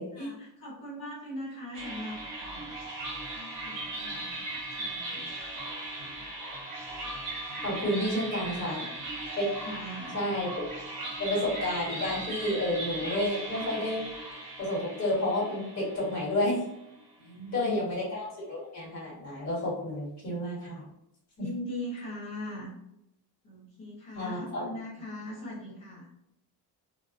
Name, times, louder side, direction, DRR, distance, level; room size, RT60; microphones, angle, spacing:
voice 1, 0.1-2.8 3.3-4.3 4.7-5.3 8.1-8.9 9.6-10.2 17.2-17.8 21.4-22.7 23.4-26.1, left 1 dB, 50° left, -8 dB, 1.1 m, -40 dB
sound 1, 1.7-17.0, right 2 dB, 40° right, 1.0 m, -38 dB
voice 2, 7.6-8.8 9.4-9.5 10.1-10.5 11.2-14.1 14.6-16.6 17.5-20.9 24.1-24.7, left 1 dB, 35° left, -6 dB, 1.3 m, -30 dB
2.3 x 2.2 x 2.5 m, 0.82 s
cardioid pair, 165°, 46 cm